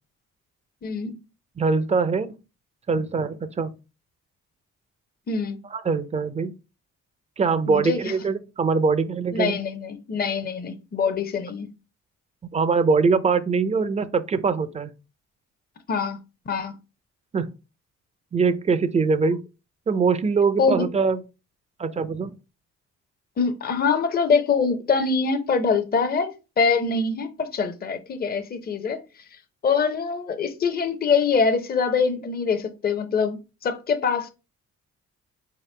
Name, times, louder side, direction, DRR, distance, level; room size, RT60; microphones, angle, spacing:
voice 1, 0.8-1.1 5.3-5.6 7.7-8.1 9.3-11.7 15.9-16.2 16.5-16.7 20.6-20.9 23.4-29.0 29.6-34.3, left 5 dB, 30° left, 0.7 m, -24 dB
voice 2, 1.6-2.3 2.9-3.7 5.7-6.5 7.4-9.6 12.5-14.9 17.3-17.5 18.3-19.4 19.9-21.2 21.8-22.3, right 4 dB, 20° right, 0.5 m, -22 dB
4.4 x 2.9 x 3.2 m
cardioid pair, 90°, 30 cm